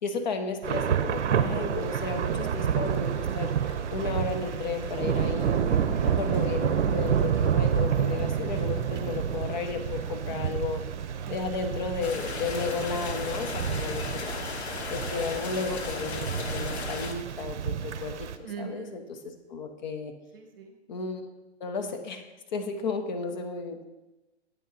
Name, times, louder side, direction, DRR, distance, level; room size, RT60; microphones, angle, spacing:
voice 1, 0.0-3.5 3.9-5.7 6.0-10.8 11.3-14.4 14.9-18.3 18.6-20.1 20.9-21.3 21.6-23.8, left 4 dB, 40° left, 5 dB, 0.8 m, -33 dB
Thunder / Rain, 0.6-18.3, right 8 dB, 75° right, 0.7 m, -29 dB
Applause, 1.5-17.4 18.1-18.4, right 4 dB, 30° right, 1.5 m, -53 dB
sound 1, 12.0-17.1, left 4 dB, 65° left, 1.1 m, -36 dB
voice 2, 18.4-19.0 20.3-20.8, right 6 dB, 55° right, 5 dB, 1.1 m, -41 dB
8.5 x 3.7 x 5.6 m, 1.1 s
hypercardioid pair, 160°, 35 cm